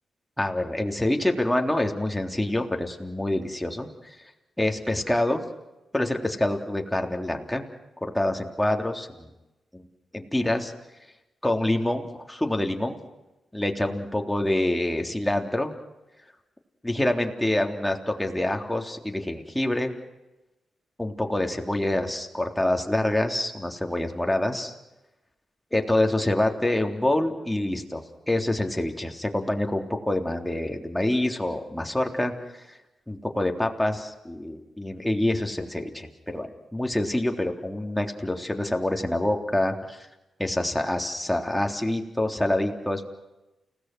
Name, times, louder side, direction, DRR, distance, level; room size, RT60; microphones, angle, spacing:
voice 1, 0.4-4.2 4.6-5.4 5.9-7.6 8.0-9.3 9.7-9.9 10.1-10.7 11.4-13.0 13.5-15.7 16.8-19.9 21.0-24.7 25.7-32.8 33.1-40.1 40.4-43.0, left 1 dB, 10° left, 3 dB, 3.5 m, -26 dB
29.5 x 18.0 x 6.2 m, 0.98 s
hypercardioid pair, 40°, 0 cm